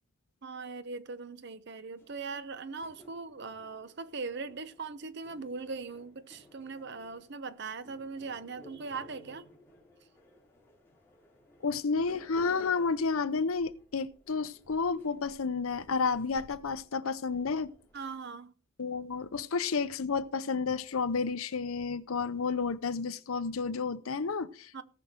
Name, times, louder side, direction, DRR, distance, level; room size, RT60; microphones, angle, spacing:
voice 1, 0.4-9.5 17.9-18.5 24.7-24.8, right 4 dB, 50° right, 0.8 m, -40 dB
sound 1, 2.0-18.1, left 1 dB, 10° left, 3.5 m, -56 dB
voice 2, 11.6-17.7 18.8-24.8, left 4 dB, 75° left, 0.7 m, -31 dB
18.0 x 6.2 x 4.4 m
head